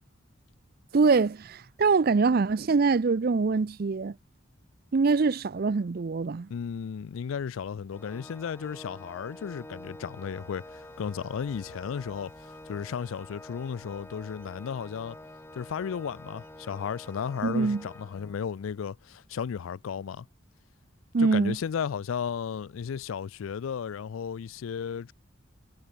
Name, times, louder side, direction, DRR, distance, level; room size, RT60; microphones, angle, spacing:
voice 1, 0.9-4.2 4.9-6.5 17.4-17.8 21.1-21.6, right 4 dB, 50° right, 0.5 m, -24 dB
voice 2, 6.5-15.2 15.6-20.3 21.2-25.1, left 7 dB, 90° left, 0.4 m, -34 dB
Organ, 7.9-18.7, left 1 dB, 10° left, 2.3 m, -47 dB
sound 1, 10.3-18.0, right 1 dB, 80° right, 7.9 m, -63 dB
head